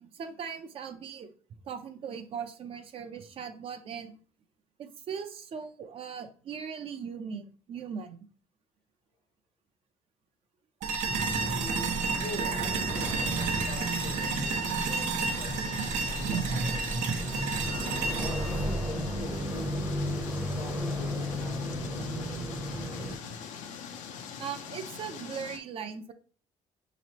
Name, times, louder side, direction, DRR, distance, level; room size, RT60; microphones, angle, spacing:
voice 1, 0.0-1.3 1.6-4.1 4.8-8.2 16.2-16.4 24.4-26.1, right 7 dB, 45° right, 0.5 m, -38 dB
sound 1, 10.8-19.9, right 5 dB, 80° right, 0.7 m, -32 dB
sound 2, 11.0-23.2, equal, 10° right, 0.7 m, -34 dB
voice 2, 12.2-17.1 17.6-19.9 20.5-22.4, left 2 dB, 40° left, 0.7 m, -44 dB
sound 3, 12.9-25.6, left 7 dB, 80° left, 0.6 m, -43 dB
5.9 x 3.0 x 2.8 m
cardioid pair, 150°, 13 cm